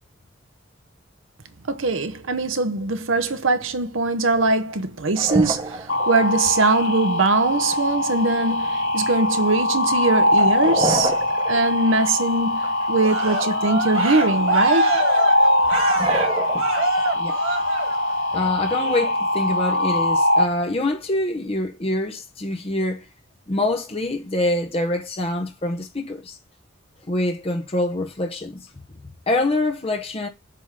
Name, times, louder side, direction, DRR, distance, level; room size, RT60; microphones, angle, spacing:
voice 1, 1.7-11.2 11.5-15.0, right 3 dB, 65° right, 0.9 m, -22 dB
sound 1, 4.7-4.8 5.1-6.2 10.3-12.2 12.6-13.1 13.5-13.7 14.1-14.7 15.3-15.4 15.6-17.1 17.9-18.5, right 2 dB, 25° right, 1.1 m, -28 dB
sound 2, 5.9-20.4, left 1 dB, 65° left, 3.0 m, -22 dB
Cheering, 13.0-18.3 18.7-19.1, right 2 dB, 85° right, 1.6 m, -25 dB
voice 2, 18.3-23.0 23.5-26.4 27.1-28.7 29.3-30.3, left 2 dB, 30° left, 0.8 m, -25 dB
7.7 x 3.7 x 6.5 m
head